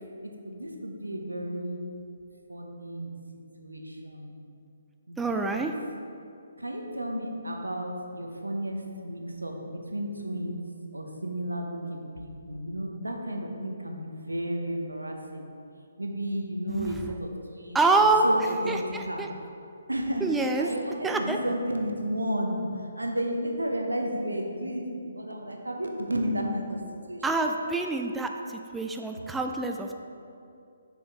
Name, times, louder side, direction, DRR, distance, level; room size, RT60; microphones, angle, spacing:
voice 1, 0.2-1.9 2.5-3.1 3.6-4.3 5.1-5.6 6.6-9.5 9.9-10.6 10.9-15.5 16.0-17.7 18.2-19.2 19.9-20.3 20.6-22.6 23.0-26.8 27.1-27.2, equal, 90° right, 2 dB, 0.9 m, -32 dB
voice 2, 5.2-5.7 16.7-17.1 17.7-19.3 20.2-20.7 21.0-21.4 27.2-30.0, right 3 dB, 5° right, 3 dB, 0.3 m, -26 dB
6.8 x 6.2 x 3.5 m, 2.6 s
figure-of-eight pair, 140°, 0 cm